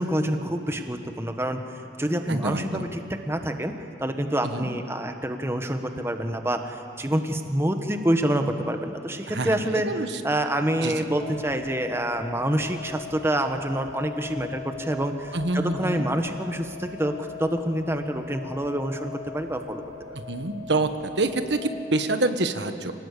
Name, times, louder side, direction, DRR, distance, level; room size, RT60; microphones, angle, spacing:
voice 1, 0.0-1.6 2.0-3.7 4.0-9.9 10.2-19.8, right 1 dB, 15° right, 6 dB, 1.2 m, -27 dB
voice 2, 2.3-2.9 4.4-4.7 9.3-10.1 10.8-11.1 15.3-16.0 20.3-22.9, right 2 dB, 80° right, 8 dB, 1.3 m, -27 dB
sound 1, 11.2-21.6, left 5 dB, 25° left, 3.8 m, -41 dB
26.5 x 18.5 x 8.3 m, 2.6 s
head